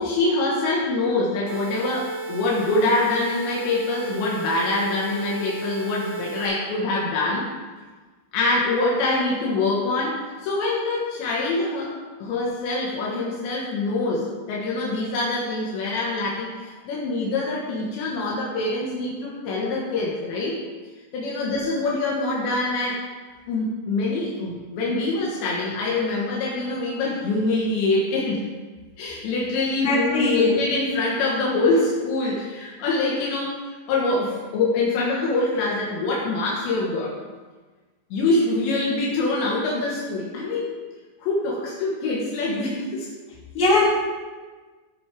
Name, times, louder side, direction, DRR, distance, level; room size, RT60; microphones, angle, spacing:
voice 1, 0.0-7.4 8.3-11.9 12.2-20.6 21.1-23.0 23.5-28.5 29.0-33.6 33.9-37.1 38.1-40.7 41.2-43.1, left 2 dB, 80° left, -5 dB, 3.8 m, -24 dB
sound 1, 1.5-6.5, right 2 dB, 90° right, 4.6 m, -33 dB
voice 2, 29.8-30.6 43.5-43.8, left 2 dB, 45° left, -8 dB, 4.8 m, -20 dB
16.0 x 7.5 x 3.6 m, 1.3 s
omnidirectional pair, 5.1 m